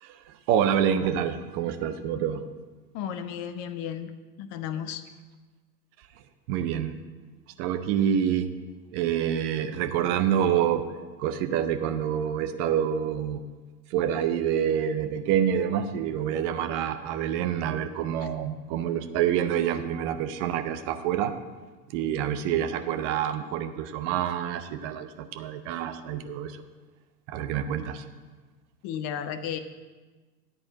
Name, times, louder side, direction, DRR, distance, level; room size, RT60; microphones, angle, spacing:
voice 1, 0.0-2.5 6.5-7.0 7.6-8.5 8.9-10.9 11.2-13.4 13.9-21.3 21.9-26.6 27.3-28.0, right 9 dB, 30° right, 9 dB, 0.5 m, -27 dB
voice 2, 2.9-4.1 4.4-5.0 28.8-29.6, left 9 dB, 25° left, 11 dB, 0.4 m, -33 dB
10.0 x 4.3 x 7.3 m, 1.3 s
figure-of-eight pair, 90°, 48 cm